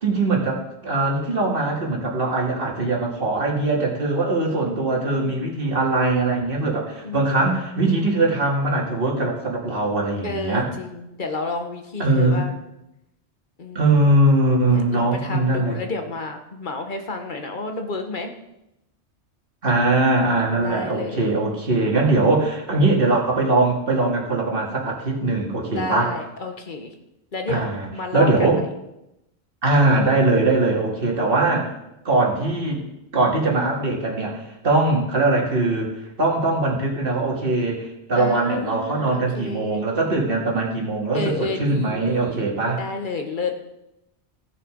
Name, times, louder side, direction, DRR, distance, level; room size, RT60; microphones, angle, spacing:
voice 1, 0.0-10.7 12.0-12.4 13.7-15.8 19.6-26.1 27.5-27.9 28.1-28.6 29.6-31.7 32.0-32.8 33.1-35.9 36.2-42.8, right 2 dB, 55° right, -2 dB, 2.4 m, -21 dB
voice 2, 4.7-5.5 7.0-7.5 10.2-12.6 13.6-14.0 14.7-18.3 20.5-21.2 25.7-26.9 27.3-28.6 38.1-40.0 41.1-42.4 42.8-43.6, left 3 dB, 45° left, 5 dB, 1.4 m, -31 dB
15.0 x 6.6 x 5.2 m, 0.87 s
omnidirectional pair, 1.2 m